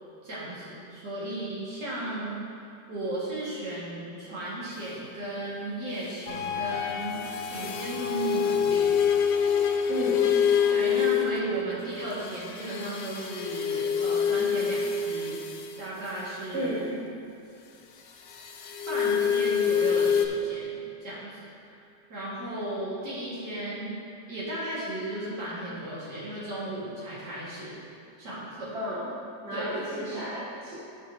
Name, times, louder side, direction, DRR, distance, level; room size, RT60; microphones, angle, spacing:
voice 1, 0.2-2.4 2.9-7.2 7.5-8.9 9.2-9.3 10.7-15.4 15.8-16.7 18.8-21.4 21.7-21.8 22.1-24.0 24.3-27.8 28.2-28.7 29.5-30.1, right 1 dB, 85° right, -9 dB, 2.4 m, -35 dB
sound 1, 6.3-12.7, left 8 dB, 65° left, 1.0 m, -38 dB
sound 2, 7.2-11.5 12.1-15.8 18.3-20.3, left 7 dB, 85° left, 1.3 m, -26 dB
voice 2, 9.9-10.4 16.5-17.0 28.7-29.1 29.4-30.8, right 1 dB, 45° right, -13 dB, 1.9 m, -33 dB
14.0 x 5.0 x 2.7 m, 2.6 s
omnidirectional pair, 1.8 m